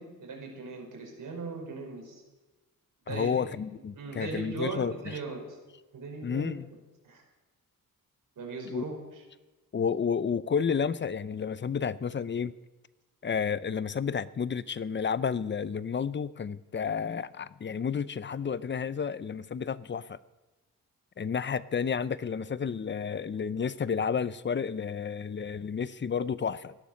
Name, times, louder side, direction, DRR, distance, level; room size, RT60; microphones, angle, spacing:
voice 1, 0.0-2.2 3.1-3.5 3.9-5.6 5.9-6.6 7.0-7.2 8.4-9.2, right 3 dB, 60° right, 1 dB, 5.4 m, -39 dB
voice 2, 3.1-4.9 6.2-6.6 8.7-8.8 9.7-12.5 13.2-20.2 21.2-26.8, left 6 dB, 30° left, 17 dB, 0.6 m, -31 dB
16.5 x 12.0 x 6.4 m, 1.1 s
cardioid pair, 85°, 35 cm